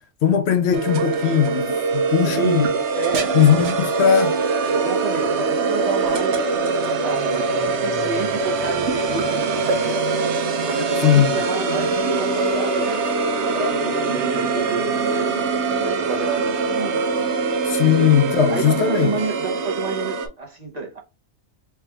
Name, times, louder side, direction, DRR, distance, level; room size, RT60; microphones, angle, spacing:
voice 1, 0.2-2.7 3.3-4.4 11.0-11.4 17.7-19.1, left 9 dB, 70° left, 0.8 m, -18 dB
sound 1, 0.7-20.3, right 4 dB, 75° right, 1.0 m, -23 dB
voice 2, 2.3-3.8 4.7-10.1 10.4-13.0 13.4-15.5 15.8-17.0 17.7-18.2 18.5-21.0, right 4 dB, 40° right, 0.8 m, -30 dB
3.5 x 2.3 x 4.3 m
omnidirectional pair, 1.2 m